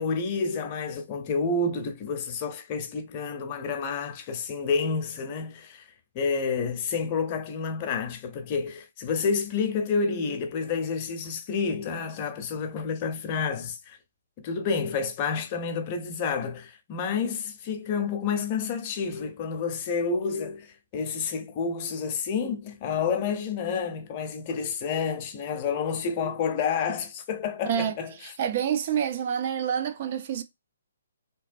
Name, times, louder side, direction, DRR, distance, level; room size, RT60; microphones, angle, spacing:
voice 1, 0.0-5.8 6.1-14.0 14.4-28.1, left 5 dB, 35° left, 0.6 m, -29 dB
voice 2, 27.6-28.0 28.2-30.4, right 8 dB, 45° right, 0.5 m, -27 dB
2.9 x 2.2 x 2.5 m
hypercardioid pair, 145°, 0 cm